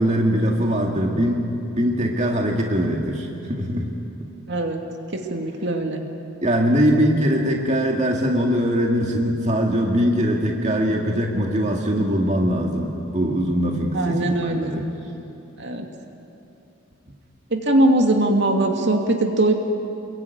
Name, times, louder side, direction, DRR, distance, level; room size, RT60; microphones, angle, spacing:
voice 1, 0.0-1.5 1.8-3.9 6.4-14.9, equal, 35° right, 0 dB, 2.1 m, -21 dB
voice 2, 4.5-4.8 5.1-6.1 13.9-14.7 15.6-15.9 17.5-19.5, right 1 dB, 55° right, 3 dB, 2.5 m, -21 dB
27.0 x 22.5 x 9.6 m, 2.8 s
head